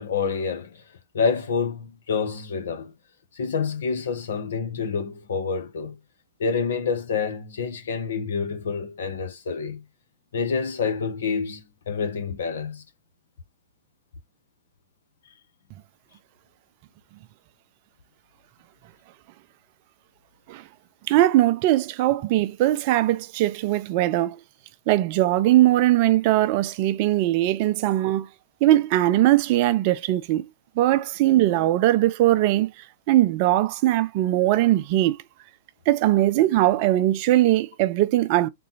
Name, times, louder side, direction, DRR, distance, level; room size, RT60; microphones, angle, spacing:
voice 1, 0.0-2.9 3.3-6.0 6.4-9.8 10.3-12.8, left 5 dB, 65° left, 0.9 m, -28 dB
voice 2, 21.1-24.4 24.9-28.3 28.6-30.5 30.8-32.7 33.1-35.2 35.9-38.5, right 15 dB, 45° right, 0.4 m, -20 dB
3.8 x 2.2 x 4.1 m
figure-of-eight pair, 110°, 0 cm